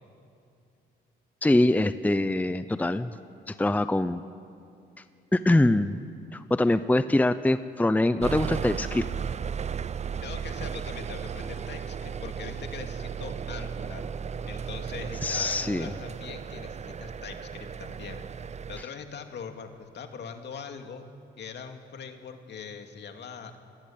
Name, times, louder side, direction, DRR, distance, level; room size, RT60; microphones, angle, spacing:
voice 1, 1.4-3.2 3.5-4.2 5.3-6.0 6.3-9.0 15.2-15.9, left 1 dB, 10° left, 12 dB, 0.7 m, -24 dB
sound 1, 8.2-18.8, right 7 dB, 35° right, 0.6 m, -35 dB
voice 2, 10.2-14.1 14.5-18.2 18.7-21.1 21.4-23.5, left 6 dB, 60° left, 5 dB, 2.4 m, -41 dB
27.5 x 20.5 x 8.7 m, 2.5 s
cardioid pair, 90°, 20 cm